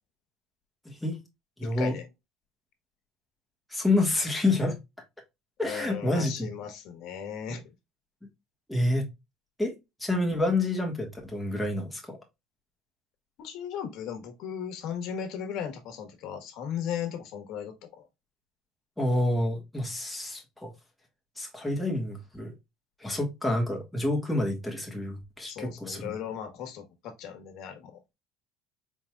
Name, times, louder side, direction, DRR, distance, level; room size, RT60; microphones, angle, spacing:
voice 1, 0.8-1.2 1.6-1.9 3.7-4.8 5.6-6.5 8.7-9.1 9.6-9.7 10.0-12.2 19.0-20.7 21.4-22.5 23.0-26.1, left 2 dB, ahead, 1.4 m, -28 dB
voice 2, 1.6-2.1 5.6-7.6 13.4-18.1 25.5-28.0, left 8 dB, 65° left, 1.2 m, -37 dB
4.6 x 3.8 x 2.2 m
cardioid pair, 125°, 0 cm